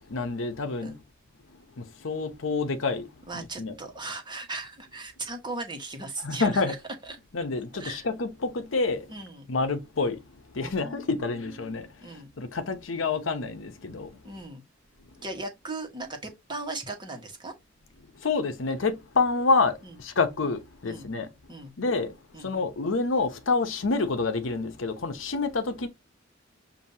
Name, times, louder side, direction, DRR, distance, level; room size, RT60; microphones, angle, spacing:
voice 1, 0.1-1.0 1.8-3.7 6.2-6.7 7.3-9.1 9.5-10.2 10.5-14.2 18.1-21.3 21.8-25.9, left 3 dB, 75° left, 0.8 m, -28 dB
voice 2, 3.3-6.8 7.1-7.2 7.7-8.0 9.1-9.5 10.6-11.7 12.0-12.3 14.2-14.6 15.2-17.5 19.8-19.9 20.8-21.1 21.5-21.7 22.3-22.5, right 2 dB, 25° right, 1.3 m, -38 dB
6.9 x 2.7 x 2.8 m
head